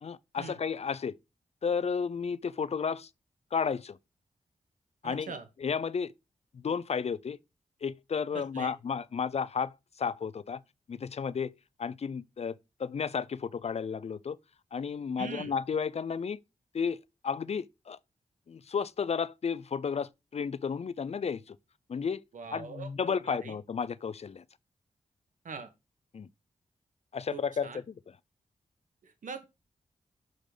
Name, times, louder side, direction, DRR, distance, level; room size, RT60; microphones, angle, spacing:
voice 1, 0.0-1.1 1.6-3.1 3.5-4.0 5.0-5.3 5.6-6.1 6.5-7.4 7.8-10.6 10.9-11.5 11.8-14.4 14.7-16.4 16.7-17.0 17.2-18.0 18.5-21.6 21.9-22.2 22.5-24.4 26.1-26.3 27.1-28.2, left 6 dB, 50° left, 0.5 m, -33 dB
voice 2, 5.0-5.5 8.5-8.7 15.2-15.5 22.3-23.6 25.4-25.7 27.3-27.8 29.0-29.5, right 5 dB, 75° right, 1.3 m, -42 dB
6.5 x 3.9 x 4.9 m
cardioid pair, 55°, 13 cm